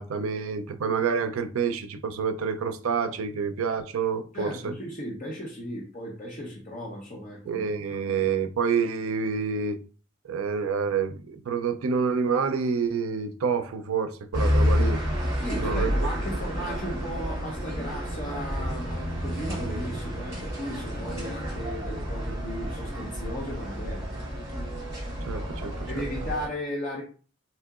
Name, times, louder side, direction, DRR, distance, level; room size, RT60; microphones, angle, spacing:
voice 1, 0.0-4.7 7.5-9.8 10.3-15.0 15.6-15.9 25.3-26.0, right 5 dB, 90° right, 0.4 m, -28 dB
voice 2, 4.3-7.6 8.0-8.2 15.4-24.1 25.9-27.0, equal, 35° left, 0.7 m, -36 dB
sound 1, 14.3-26.5, equal, 15° right, 1.6 m, -30 dB
4.1 x 2.8 x 2.4 m
head